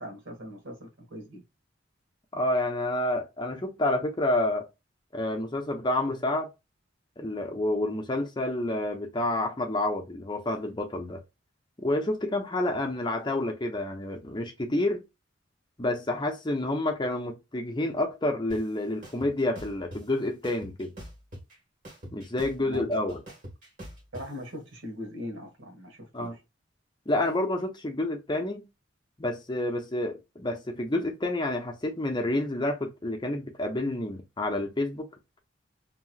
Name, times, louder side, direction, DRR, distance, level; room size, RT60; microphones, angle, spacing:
voice 1, 0.0-1.4 22.6-23.1 24.1-26.4, equal, 75° right, 1.3 m, -40 dB
voice 2, 2.3-4.7 5.1-6.5 7.2-11.2 11.8-15.0 15.8-20.9 22.1-23.2 26.1-26.4 27.1-28.6 29.2-35.1, left 1 dB, 20° left, 0.6 m, -29 dB
sound 1, 18.5-18.6 19.0-20.0 20.4-21.5 21.8-24.2, equal, 40° right, 1.5 m, -42 dB
3.0 x 2.9 x 2.3 m
head